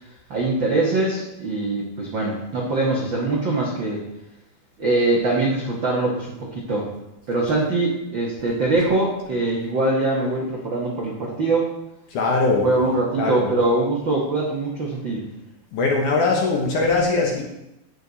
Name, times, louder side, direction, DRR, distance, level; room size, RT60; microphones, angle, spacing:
voice 1, 0.3-4.0 4.8-6.9 7.3-11.7 12.6-15.2, right 2 dB, 70° right, -3 dB, 1.1 m, -23 dB
voice 2, 12.1-12.7 13.2-13.5 15.7-17.4, left 3 dB, 65° left, 0 dB, 2.2 m, -21 dB
17.0 x 6.7 x 4.1 m, 0.88 s
omnidirectional pair, 4.8 m